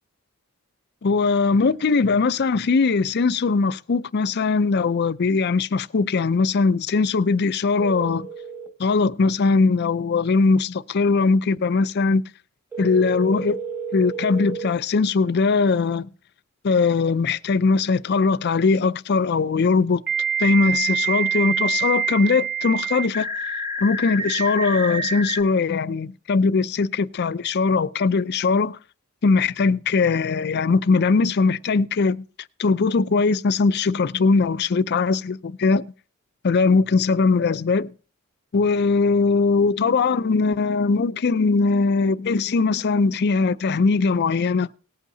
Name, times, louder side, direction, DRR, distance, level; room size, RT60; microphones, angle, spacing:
voice 1, 1.0-8.3 8.8-12.2 12.8-13.6 13.9-16.1 16.6-20.0 20.4-23.3 23.8-28.8 29.2-32.2 32.6-35.8 36.4-37.9 38.5-44.7, left 4 dB, 50° left, 0.5 m, -20 dB
sound 1, 7.8-8.7 12.7-14.7 17.3-17.4 20.1-25.4, right 5 dB, 10° right, 1.7 m, -27 dB
19.0 x 8.3 x 2.7 m
head